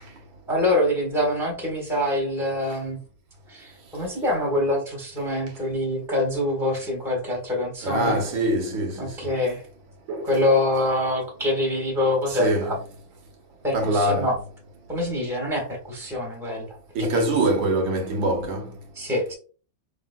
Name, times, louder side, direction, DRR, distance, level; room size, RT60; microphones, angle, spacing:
voice 1, 0.5-3.0 3.5-8.2 9.0-9.6 10.2-12.8 13.6-14.3 14.9-16.7 17.0-17.1 18.9-19.3, left 1 dB, ahead, 1.1 m, -25 dB
voice 2, 7.8-9.1 10.1-10.4 12.3-12.8 13.7-14.3 16.9-18.7, right 1 dB, 70° right, 1.5 m, -24 dB
5.0 x 3.4 x 2.2 m
omnidirectional pair, 2.2 m